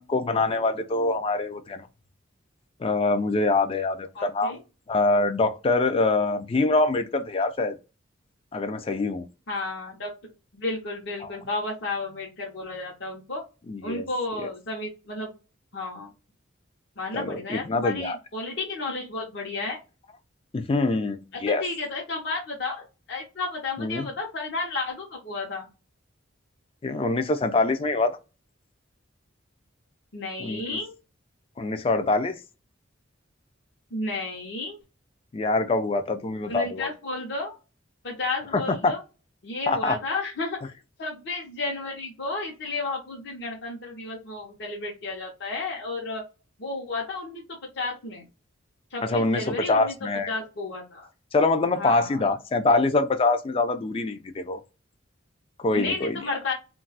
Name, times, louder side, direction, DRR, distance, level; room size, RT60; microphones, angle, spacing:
voice 1, 0.0-1.9 2.8-4.6 4.9-7.8 8.5-9.3 11.2-11.3 13.7-14.1 14.4-14.5 17.1-18.2 20.5-21.6 23.8-24.1 26.8-28.1 30.4-30.8 31.6-32.4 35.3-36.9 38.5-38.9 39.7-40.0 49.0-50.3 51.3-54.6 55.6-56.2, left 3 dB, 30° left, 0.3 m, -24 dB
voice 2, 4.1-4.6 9.5-13.4 13.8-15.3 15.7-16.1 17.0-19.8 21.3-25.7 30.1-30.9 33.9-34.8 36.5-37.5 38.0-39.0 39.4-40.6 41.0-46.2 46.6-48.3 48.9-49.9 50.3-51.1 51.7-52.2 55.7-56.5, left 3 dB, 55° left, 0.7 m, -32 dB
2.3 x 2.3 x 3.9 m
head